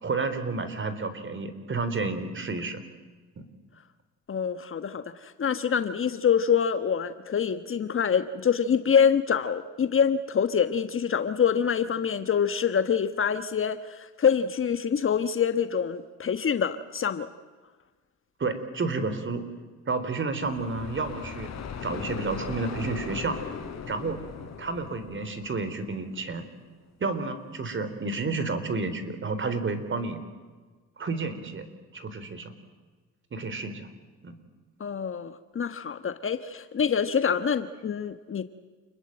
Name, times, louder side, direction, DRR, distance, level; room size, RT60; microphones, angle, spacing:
voice 1, 0.0-2.8 3.4-3.5 18.4-19.4 19.9-21.5 21.8-23.4 23.9-24.2 24.6-26.4 27.0-30.2 31.0-31.7 31.9-32.5 33.3-33.9 34.2-34.3, right 3 dB, 40° right, 11 dB, 3.9 m, -31 dB
voice 2, 4.3-17.3 34.8-38.4, left 7 dB, 45° left, 10 dB, 1.3 m, -26 dB
sound 1, 20.4-26.1, left 6 dB, 60° left, 4.5 m, -38 dB
29.0 x 21.5 x 9.0 m, 1.4 s
cardioid pair, 90°, 30 cm